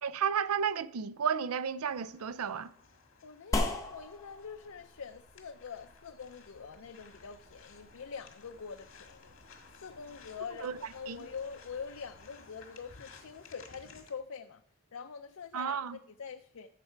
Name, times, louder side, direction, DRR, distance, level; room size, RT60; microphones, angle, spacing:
voice 1, 0.0-2.7 10.6-10.8 11.1-11.2 15.5-16.0, right 7 dB, 85° right, 0.5 m, -32 dB
sound 1, 1.9-14.1, left 4 dB, 60° left, 1.6 m, -56 dB
voice 2, 3.2-14.6 14.9-16.7, left 6 dB, 75° left, 0.5 m, -45 dB
sound 2, 3.5-12.2, left 2 dB, 15° left, 1.0 m, -41 dB
13.5 x 6.6 x 4.5 m
head